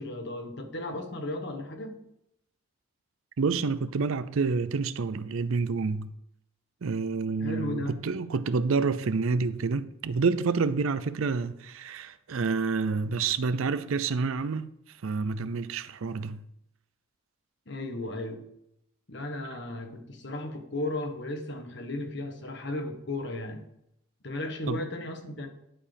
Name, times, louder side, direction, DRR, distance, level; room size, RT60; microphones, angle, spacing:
voice 1, 0.0-2.0 7.4-8.0 17.7-18.4 19.1-23.6 24.2-25.5, left 2 dB, 55° left, 1.5 m, -35 dB
voice 2, 3.4-6.1 6.8-14.7 15.0-16.4 24.7-24.8, right 4 dB, 70° right, 0.5 m, -28 dB
11.5 x 4.8 x 5.1 m
head